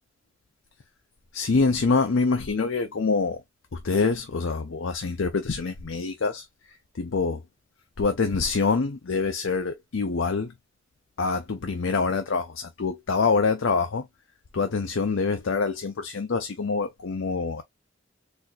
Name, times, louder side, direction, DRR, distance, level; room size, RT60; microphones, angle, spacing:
voice 1, 1.3-3.4 3.8-6.5 7.0-7.4 8.0-10.5 11.2-14.1 14.5-17.6, left 4 dB, 75° left, 0.6 m, -25 dB
4.2 x 2.5 x 2.5 m
head